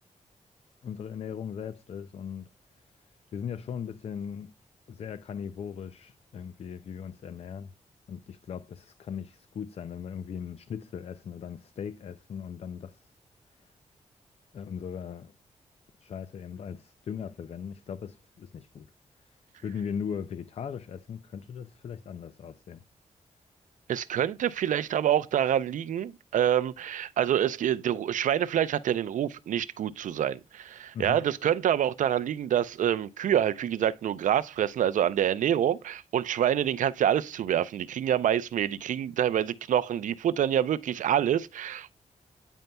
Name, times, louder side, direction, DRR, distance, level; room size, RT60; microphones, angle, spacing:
voice 1, 0.8-2.5 3.3-4.5 4.9-7.7 8.1-13.1 13.6-13.7 14.5-15.3 16.0-18.9 19.6-22.8 30.9-31.2, left 7 dB, 55° left, 0.4 m, -38 dB
voice 2, 23.9-41.9, right 10 dB, 90° right, 0.4 m, -26 dB
9.0 x 5.3 x 2.2 m
wide cardioid pair, 105°, 13 cm